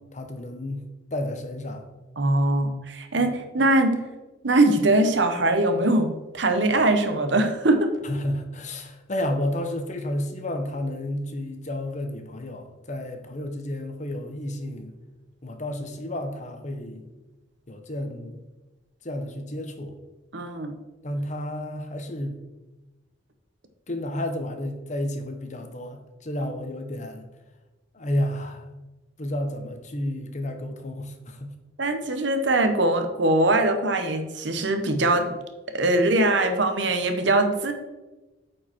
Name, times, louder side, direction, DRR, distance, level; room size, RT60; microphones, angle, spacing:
voice 1, 0.1-0.8 1.1-1.9 3.2-3.3 8.0-14.9 15.4-17.1 17.7-18.4 19.0-20.0 21.0-22.4 23.9-27.2 27.9-28.7 29.2-31.5, left 1 dB, 40° left, 5 dB, 0.9 m, -31 dB
voice 2, 2.2-4.0 4.4-6.1 6.3-7.9 20.3-20.7 31.8-35.3 35.7-37.7, right 2 dB, 70° right, 7 dB, 1.0 m, -22 dB
8.8 x 4.8 x 4.4 m, 1.1 s
head